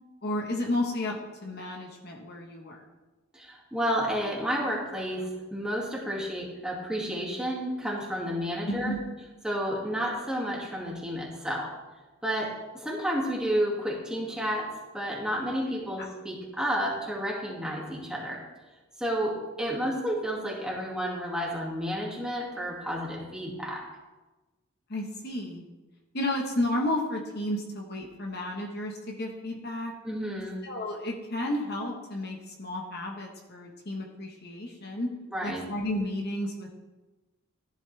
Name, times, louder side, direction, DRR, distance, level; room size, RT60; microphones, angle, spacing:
voice 1, 0.2-1.2 1.4-2.8 8.7-9.0 16.0-16.1 24.9-25.6 26.1-29.9 30.6-35.1 35.4-36.7, left 1 dB, 45° left, 1 dB, 1.3 m, -32 dB
voice 2, 3.3-9.0 9.4-11.7 12.2-14.7 14.9-18.4 19.0-23.8 30.0-30.6 35.3-35.7, equal, 5° right, -3 dB, 2.3 m, -31 dB
14.5 x 11.5 x 3.4 m, 1.2 s
head